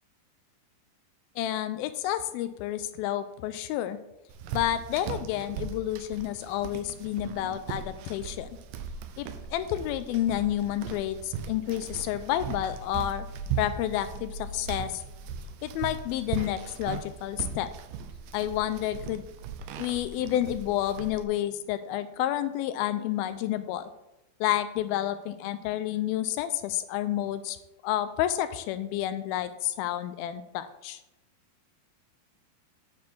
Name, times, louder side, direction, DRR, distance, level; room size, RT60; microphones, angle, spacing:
voice 1, 1.4-4.0 4.5-8.5 9.2-13.3 13.6-15.0 15.6-17.7 18.3-19.3 19.8-23.9 24.4-27.6 27.8-31.0, left 12 dB, 80° left, 12 dB, 2.3 m, -30 dB
sound 1, 4.3-21.2, right 6 dB, 85° right, 1.9 m, -38 dB
8.1 x 4.8 x 7.1 m, 0.93 s
omnidirectional pair, 4.5 m